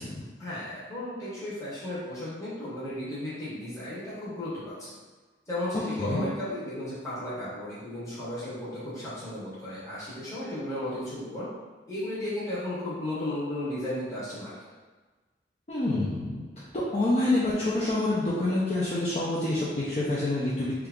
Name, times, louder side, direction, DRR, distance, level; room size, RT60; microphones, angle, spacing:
voice 1, 0.4-5.0 5.5-11.5 11.9-14.5, left 1 dB, 20° left, -10 dB, 0.8 m, -34 dB
voice 2, 15.7-20.7, left 2 dB, 40° left, -8 dB, 0.4 m, -27 dB
2.8 x 2.3 x 3.5 m, 1.3 s
head